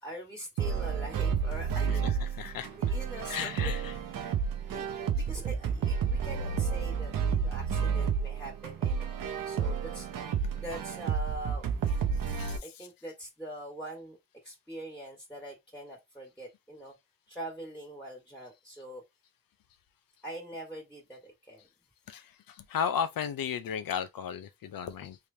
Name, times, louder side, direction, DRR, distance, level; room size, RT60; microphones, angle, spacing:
voice 1, 0.0-2.0 2.7-4.3 4.7-10.1 10.6-11.7 12.6-14.2 14.4-16.9 17.3-19.0 20.2-21.7, right 1 dB, 5° left, 1.6 m, -43 dB
sound 1, 0.6-12.6, right 6 dB, 75° right, 0.7 m, -31 dB
voice 2, 2.4-2.7 3.3-3.9 4.2-4.3 12.3-12.9 22.1-25.2, left 8 dB, 80° left, 0.6 m, -35 dB
3.4 x 3.3 x 2.7 m
cardioid pair, 70°, 34 cm